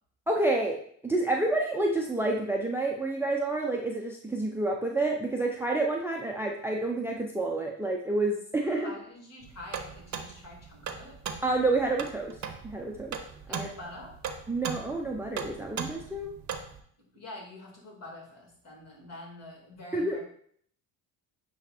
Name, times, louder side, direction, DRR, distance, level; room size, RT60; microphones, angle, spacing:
voice 1, 0.3-0.8 1.0-8.9 11.4-12.4 12.6-13.2 13.5-13.7 14.5-16.3 19.9-20.2, right 2 dB, 5° right, 0 dB, 0.7 m, -29 dB
voice 2, 8.6-11.2 13.5-14.1 17.1-20.2, left 2 dB, 40° left, -1 dB, 2.9 m, -46 dB
sound 1, 9.4-16.8, right 7 dB, 45° right, 0.9 m, -39 dB
8.7 x 3.2 x 4.4 m, 0.62 s
cardioid pair, 95°, 39 cm